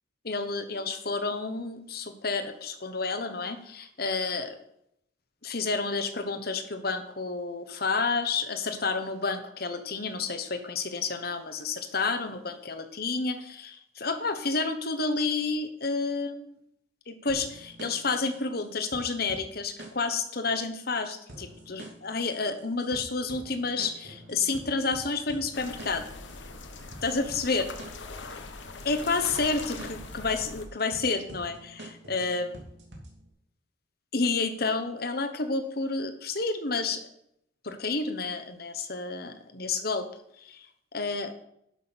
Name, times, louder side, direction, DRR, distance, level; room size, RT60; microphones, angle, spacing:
voice 1, 0.2-4.6 5.4-16.5 17.1-26.1 27.0-27.7 28.8-32.6 34.1-37.0 37.6-40.1 40.4-40.7 40.9-41.3, left 4 dB, 50° left, 8 dB, 1.2 m, -30 dB
sound 1, 17.3-33.3, right 1 dB, 70° right, 2.9 m, -47 dB
sound 2, 25.5-30.7, left 3 dB, 70° left, 1.1 m, -42 dB
11.5 x 6.1 x 6.2 m, 0.75 s
head